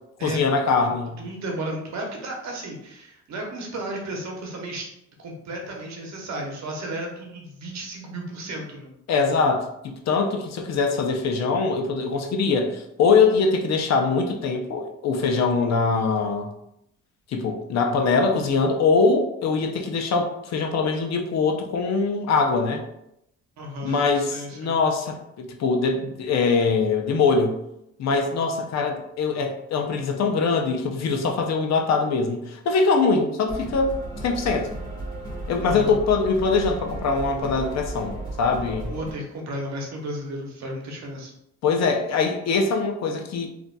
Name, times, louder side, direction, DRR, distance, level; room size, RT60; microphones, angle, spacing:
voice 1, 0.2-1.2 9.1-16.5 17.3-22.8 23.8-27.6 28.0-33.9 34.2-34.7 35.5-38.9 41.6-43.5, left 4 dB, 60° left, 3 dB, 0.6 m, -23 dB
voice 2, 1.2-4.9 5.2-8.9 23.6-24.8 35.6-36.0 38.9-41.3, right 1 dB, 65° right, 0 dB, 0.9 m, -33 dB
sound 1, 33.5-39.1, right 1 dB, 15° left, 1.4 m, -34 dB
3.9 x 2.5 x 2.2 m, 0.80 s
cardioid pair, 90°, 30 cm